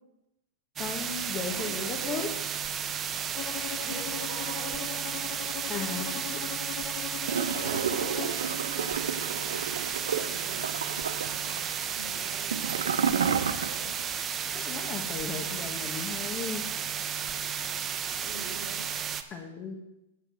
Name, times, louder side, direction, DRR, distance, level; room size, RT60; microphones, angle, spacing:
voice 1, 0.8-2.3 5.7-6.6 14.5-16.6 19.3-19.7, left 5 dB, 30° left, 1 dB, 1.4 m, -36 dB
sound 1, 0.8-19.2, right 8 dB, 25° right, 0.7 m, -33 dB
voice 2, 1.3-2.3 3.6-5.2 7.5-13.9 18.2-18.8, right 4 dB, 50° right, 2 dB, 2.6 m, -44 dB
Bowed string instrument, 3.3-8.4, left 15 dB, 45° left, 0.4 m, -40 dB
Gurgling / Toilet flush, 7.3-14.1 14.4-14.5, right 7 dB, 85° right, 0.7 m, -31 dB
8.9 x 6.0 x 7.5 m, 0.92 s
hypercardioid pair, 120°, 0 cm